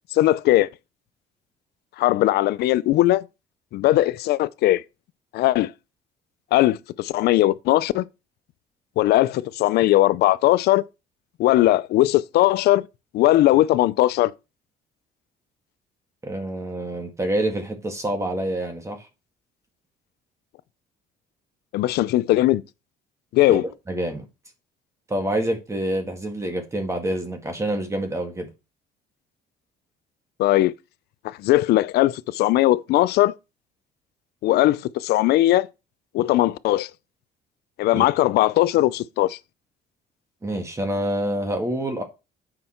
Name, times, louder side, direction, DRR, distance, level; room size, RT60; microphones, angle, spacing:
voice 1, 0.1-0.7 2.0-3.3 3.7-4.8 5.3-5.7 6.5-8.0 9.0-10.8 11.4-12.9 13.1-14.3 21.7-22.6 23.3-23.7 30.4-30.7 31.2-33.4 34.4-35.7 36.1-36.9 37.8-39.4, left 15 dB, 75° left, 0.5 m, -19 dB
voice 2, 16.2-19.1 23.5-23.6 23.9-24.2 25.1-28.5 37.9-38.1 40.4-42.0, right 1 dB, 15° right, 1.8 m, -27 dB
7.8 x 5.4 x 4.4 m
cardioid pair, 110°, 17 cm